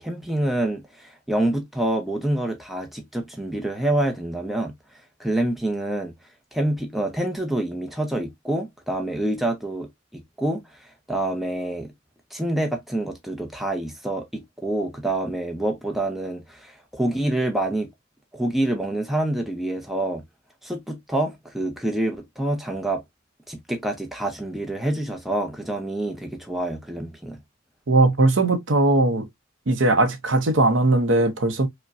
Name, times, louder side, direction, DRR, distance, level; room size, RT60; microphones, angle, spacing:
voice 1, 0.0-4.7 5.2-6.1 6.5-11.9 12.3-17.9 18.3-20.2 20.6-23.0 23.5-27.4, right 1 dB, ahead, 0.6 m, -27 dB
voice 2, 27.9-29.3 29.7-31.7, right 2 dB, 75° right, 0.7 m, -19 dB
5.0 x 2.2 x 2.5 m
head